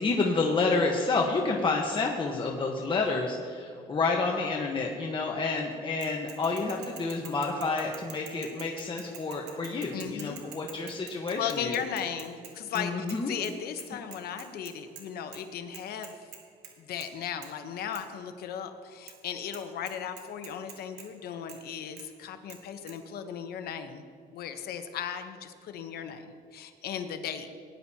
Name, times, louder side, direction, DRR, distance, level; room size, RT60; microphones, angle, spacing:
voice 1, 0.0-11.8 12.7-13.3, left 3 dB, 30° left, 0 dB, 1.2 m, -29 dB
Bicycle / Mechanisms, 6.0-13.2 13.4-13.5 13.8-15.0 15.3-15.4 15.7-16.7 17.0-17.2 17.4-17.5 17.9-18.0 19.1-19.2 19.5-19.6 19.9-21.1 21.5-21.6 22.0-22.1 22.5-22.6 22.9-23.0, right 8 dB, 85° right, 1.9 m, -46 dB
voice 2, 9.9-10.5 11.4-16.1 16.8-24.0 24.3-27.5, left 8 dB, 65° left, 8 dB, 1.0 m, -36 dB
18.5 x 10.5 x 2.9 m, 2.4 s
cardioid pair, 110°, 17 cm